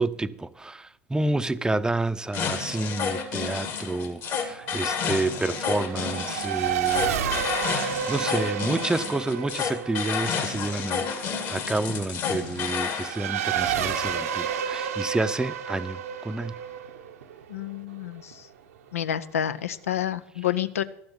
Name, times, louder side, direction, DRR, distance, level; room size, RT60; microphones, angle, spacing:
voice 1, 0.0-16.6, right 2 dB, 10° right, 0.6 m, -29 dB
sound 1, 2.3-13.1, left 6 dB, 55° left, 2.7 m, -30 dB
Race car auto racing / Accelerating revving vroom, 4.2-18.3, right 8 dB, 85° right, 0.9 m, -31 dB
voice 2, 17.5-18.3 18.9-20.8, left 10 dB, 85° left, 0.6 m, -29 dB
13.0 x 7.9 x 7.1 m
hypercardioid pair, 80°, 7 cm